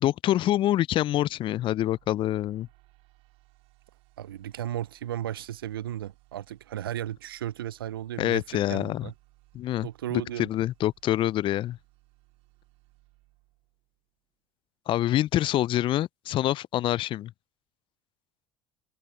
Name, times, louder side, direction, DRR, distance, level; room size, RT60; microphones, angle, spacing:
voice 1, 0.0-2.7 8.2-9.0 9.5-11.8 14.9-17.3, left 13 dB, 45° left, 0.4 m, -26 dB
sound 1, 1.1-14.2, right 22 dB, 65° right, 4.8 m, -63 dB
voice 2, 4.2-9.1 9.8-10.5, right 12 dB, 85° right, 0.6 m, -35 dB
hypercardioid pair, 60°, 12 cm